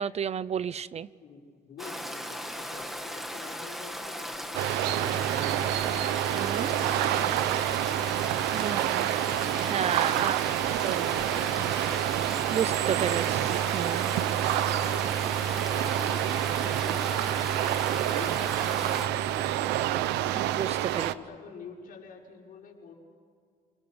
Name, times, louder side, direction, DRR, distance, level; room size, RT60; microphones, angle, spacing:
voice 1, 0.0-1.1 6.4-6.7 8.5-9.1 9.6-10.4 10.8-11.1 12.5-14.1 14.5-14.6 20.3-21.1, right 8 dB, 40° right, 18 dB, 0.6 m, -32 dB
voice 2, 1.2-6.2 6.6-8.1 10.1-12.0 14.4-19.7 20.9-22.9, left 5 dB, 55° left, -1 dB, 5.9 m, -47 dB
Stream, 1.8-19.1, equal, ahead, 2.1 m, -38 dB
sound 1, 4.5-21.1, right 12 dB, 90° right, 0.9 m, -28 dB
29.5 x 20.0 x 8.0 m, 2.2 s
cardioid pair, 110°, 17 cm